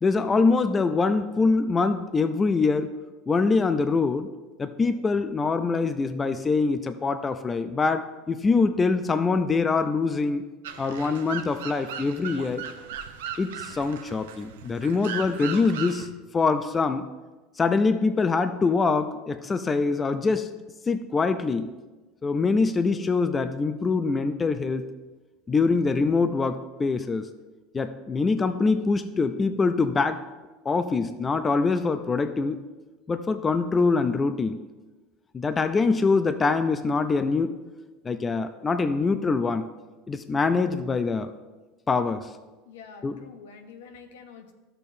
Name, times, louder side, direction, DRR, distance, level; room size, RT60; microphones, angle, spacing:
voice 1, 0.0-2.9 3.3-4.3 4.6-10.4 10.8-12.6 13.4-16.1 16.3-17.1 17.6-20.5 20.9-21.7 22.2-24.9 25.5-27.3 27.7-30.2 30.7-32.6 33.1-34.6 35.3-37.6 38.0-39.7 40.1-41.3 41.9-42.3 43.0-43.2, left 4 dB, 25° left, 10 dB, 0.5 m, -24 dB
sound 1, 10.6-16.1, right 8 dB, 85° right, 0.7 m, -37 dB
voice 2, 42.7-44.5, left 6 dB, 85° left, 6 dB, 0.9 m, -46 dB
12.0 x 6.6 x 2.7 m, 1.2 s
hypercardioid pair, 95°, 0 cm